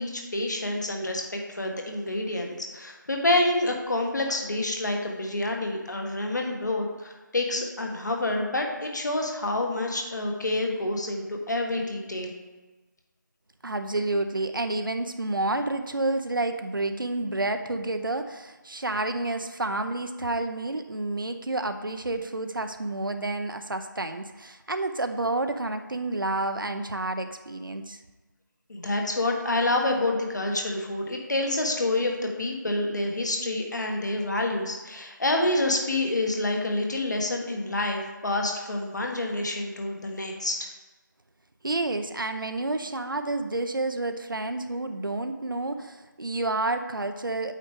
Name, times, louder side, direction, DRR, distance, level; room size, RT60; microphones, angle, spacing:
voice 1, 0.0-12.3 28.7-40.7, left 2 dB, 60° left, 2 dB, 1.3 m, -28 dB
voice 2, 13.6-28.0 41.6-47.5, right 2 dB, 85° right, 7 dB, 0.6 m, -29 dB
8.3 x 4.6 x 3.6 m, 1.2 s
figure-of-eight pair, 165°, 11 cm